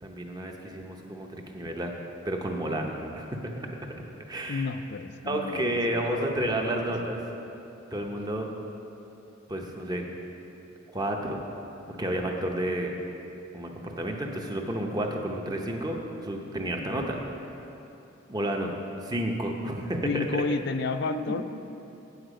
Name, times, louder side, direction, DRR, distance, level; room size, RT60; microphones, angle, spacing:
voice 1, 0.0-1.9 2.2-3.4 4.3-4.7 5.2-7.2 7.9-8.5 9.5-10.0 10.9-11.4 11.9-12.9 13.5-17.2 18.3-18.7 19.0-20.4 21.1-21.2, right 1 dB, 20° right, 2 dB, 0.8 m, -31 dB
voice 2, 4.5-6.9 20.0-21.4, left 4 dB, 55° left, 11 dB, 0.4 m, -32 dB
9.0 x 8.1 x 5.0 m, 2.9 s
head